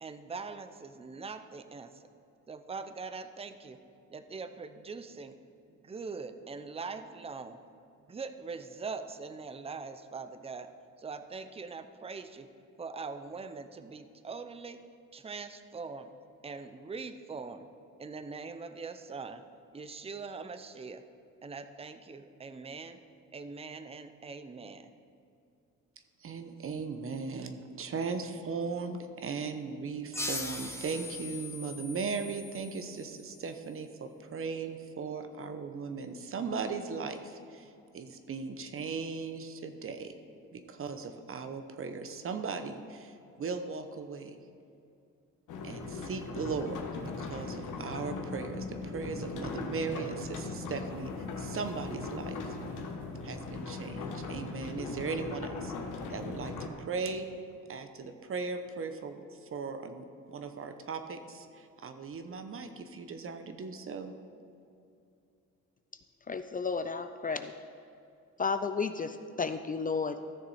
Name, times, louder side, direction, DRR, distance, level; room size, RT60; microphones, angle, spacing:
voice 1, 0.0-2.1 2.5-3.8 4.1-5.4 5.7-7.6 8.1-10.7 11.0-12.5 12.8-14.8 15.1-16.1 16.4-17.7 18.0-19.4 19.7-21.0 21.4-23.0 23.3-24.9, right 4 dB, 20° right, 10 dB, 0.6 m, -42 dB
voice 2, 26.2-40.1 40.5-44.4 45.6-52.5 53.2-55.7 56.1-57.3 57.7-64.1, right 4 dB, 45° right, 8 dB, 0.9 m, -38 dB
sound 1, 30.1-33.4, left 2 dB, 10° left, 1.1 m, -40 dB
sound 2, 45.5-56.7, left 3 dB, 85° left, 1.3 m, -39 dB
voice 3, 66.3-67.5 68.4-70.3, left 5 dB, 30° left, 9 dB, 0.4 m, -33 dB
14.5 x 6.7 x 4.2 m, 2.6 s
cardioid pair, 90°, 30 cm